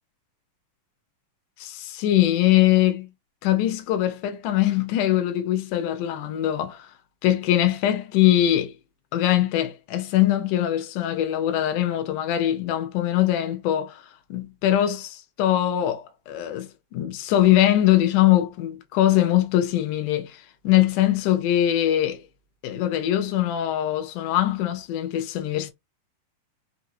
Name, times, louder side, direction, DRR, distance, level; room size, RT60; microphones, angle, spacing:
voice 1, 1.6-3.1 3.4-6.9 7.2-8.7 9.1-14.0 14.3-22.2 22.6-25.7, left 13 dB, 75° left, 2.3 m, -22 dB
5.5 x 2.7 x 2.7 m
omnidirectional pair, 3.8 m